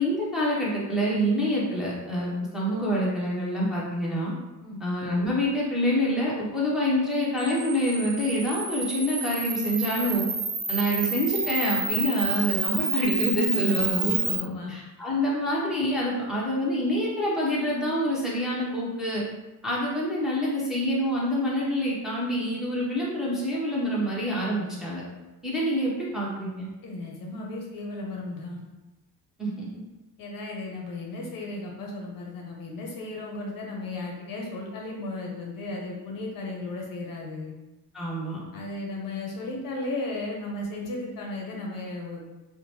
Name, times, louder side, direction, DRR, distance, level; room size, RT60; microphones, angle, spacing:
voice 1, 0.0-4.3 4.8-10.3 10.7-14.3 14.7-19.2 19.6-25.0 25.4-26.7 29.4-29.7 37.9-38.4, equal, ahead, -6 dB, 0.8 m, -26 dB
Camera, 7.4-14.4, right 3 dB, 85° right, 1.0 m, -29 dB
voice 2, 14.2-14.7 26.8-28.6 30.2-37.5 38.5-42.3, left 2 dB, 45° left, -1 dB, 0.7 m, -35 dB
2.9 x 2.2 x 2.8 m, 1.0 s
supercardioid pair, 80°, 46 cm